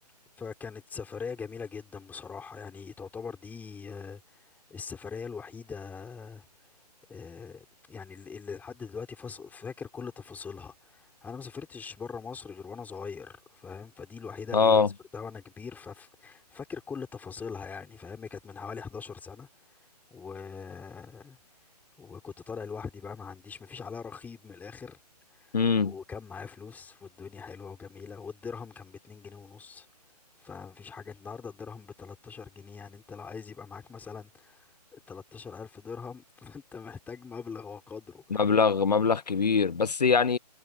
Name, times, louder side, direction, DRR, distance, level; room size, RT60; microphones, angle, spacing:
voice 1, 0.4-6.5 7.1-14.9 15.1-19.5 20.1-21.4 22.0-25.0 25.3-25.6 25.8-29.9 30.4-38.4, left 5 dB, 10° left, 5.5 m, -42 dB
voice 2, 14.5-14.9 25.5-25.9 38.3-40.4, left 5 dB, 75° left, 0.8 m, -23 dB
figure-of-eight pair, 135°, 21 cm